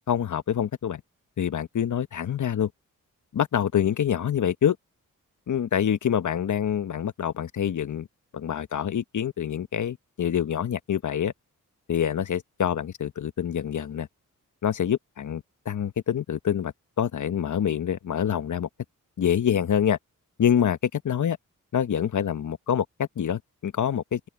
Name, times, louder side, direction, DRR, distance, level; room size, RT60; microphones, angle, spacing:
voice 1, 0.1-1.0 1.4-2.7 3.3-4.8 5.5-8.1 8.3-11.3 11.9-14.1 14.6-18.7 19.2-20.0 20.4-21.4 21.7-24.2, left 9 dB, 60° left, 1.1 m, -26 dB
open air
cardioid pair, 60°, 34 cm